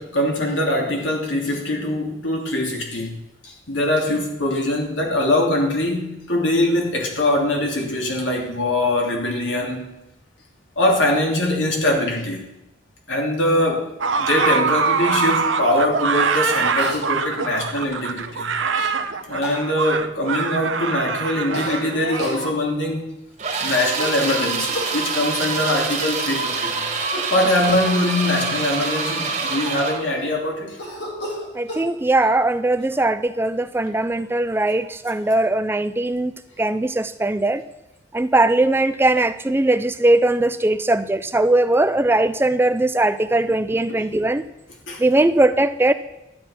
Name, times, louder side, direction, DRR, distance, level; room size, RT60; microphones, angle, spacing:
voice 1, 0.0-3.2 3.4-9.9 10.8-12.5 13.1-13.9 14.2-18.5 19.3-23.2 23.6-26.9 27.2-30.8 43.9-44.0 44.9-45.0, left 1 dB, 85° left, 0 dB, 2.9 m, -22 dB
sound 1, 14.0-22.5, right 5 dB, 85° right, 0.8 m, -23 dB
Cough, 16.2-16.4 16.8-17.0 18.8-18.9 19.4-19.6 21.5-21.8 22.2-22.4 24.0-25.0 27.0-27.4 27.7-28.0 28.6-28.7 29.0-30.0 30.8-31.9, equal, 60° left, 3.4 m, -33 dB
sound 2, 23.4-30.1, right 4 dB, 35° right, 2.0 m, -25 dB
voice 2, 31.5-37.6 38.1-44.4 45.0-45.9, right 2 dB, 10° right, 12 dB, 0.3 m, -20 dB
12.0 x 9.0 x 5.7 m, 0.90 s
head